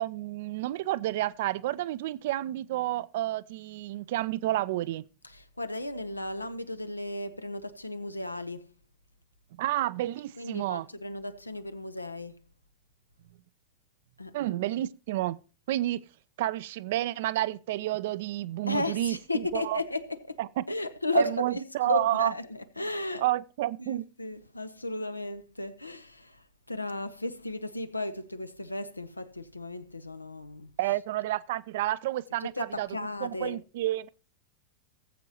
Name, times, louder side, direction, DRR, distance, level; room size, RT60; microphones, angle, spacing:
voice 1, 0.0-5.0 9.6-10.9 14.3-15.4 15.7-16.0 16.4-19.8 20.4-20.6 21.1-22.3 23.2-24.0 30.8-32.5 32.8-32.9 33.2-34.1, right 15 dB, 55° right, 0.5 m, -30 dB
voice 2, 5.2-8.7 10.4-12.4 14.2-14.3 18.7-20.4 20.7-23.2 23.8-30.8 32.4-33.6, left 2 dB, 85° left, 0.8 m, -34 dB
19.0 x 7.7 x 2.9 m
figure-of-eight pair, 90°, 0 cm